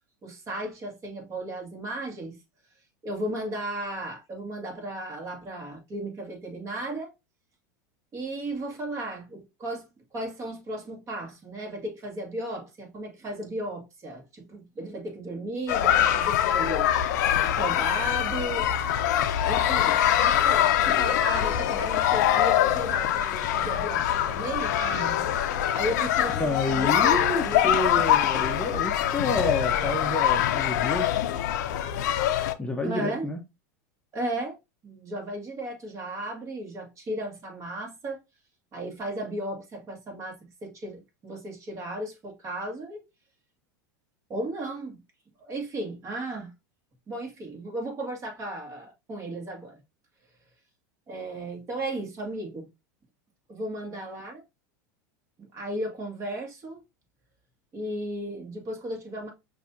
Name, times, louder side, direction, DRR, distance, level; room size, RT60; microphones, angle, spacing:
voice 1, 0.2-2.4 3.0-7.1 8.1-16.9 17.4-18.7 19.4-25.4 25.7-27.7 32.8-33.3 34.1-34.5 34.8-38.2 38.7-43.0 44.3-45.0 45.4-46.5 47.1-49.8 51.1-52.7 53.5-54.4 55.4-56.8 57.7-59.3, right 1 dB, 30° right, 1.9 m, -35 dB
sound 1, 15.7-32.5, left 10 dB, 70° left, 0.5 m, -24 dB
voice 2, 26.3-31.1 32.6-33.4, left 2 dB, 10° left, 0.8 m, -29 dB
5.8 x 2.7 x 2.6 m
hypercardioid pair, 105°, 10 cm